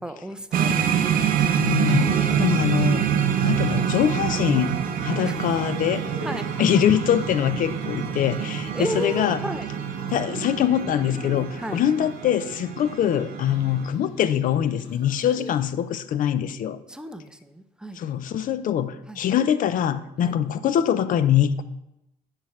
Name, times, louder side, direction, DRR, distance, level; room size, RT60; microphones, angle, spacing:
voice 1, 0.0-1.4 5.2-5.6 6.2-6.5 8.7-9.7 11.6-11.8 15.4-15.5 16.9-18.0 19.1-19.2 20.2-20.3, right 1 dB, 5° right, 9 dB, 0.5 m, -33 dB
sound 1, 0.5-13.9, right 9 dB, 55° right, 0.6 m, -26 dB
Liquid, 1.6-15.7, left 2 dB, 75° left, 2.2 m, -40 dB
voice 2, 1.6-3.1 3.4-4.8 5.0-6.0 6.6-9.4 10.1-16.8 18.0-21.6, left 10 dB, 55° left, 14 dB, 0.5 m, -23 dB
8.7 x 5.9 x 3.1 m, 0.86 s
cardioid pair, 110°, 17 cm